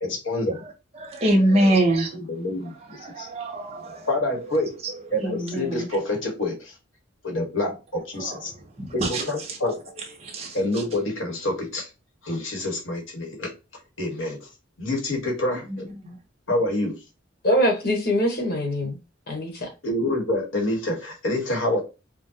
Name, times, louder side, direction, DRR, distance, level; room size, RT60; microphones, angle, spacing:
voice 1, 0.0-0.6 2.3-3.3 4.1-4.7 5.1-6.7 7.2-8.5 8.9-9.7 10.5-11.9 12.2-13.5 14.0-14.4 14.8-15.9 16.5-17.0 18.8-18.9 19.8-21.8, left 1 dB, 75° left, 1.5 m, -27 dB
voice 2, 0.6-2.1 2.9-4.1 4.8-4.9 5.2-5.9 8.2-8.4 8.8-9.6 10.0-10.8 16.0-16.2, right 1 dB, 30° right, 0.9 m, -25 dB
voice 3, 17.4-19.0 19.3-19.7, equal, 50° left, 1.2 m, -23 dB
5.1 x 2.3 x 2.7 m
head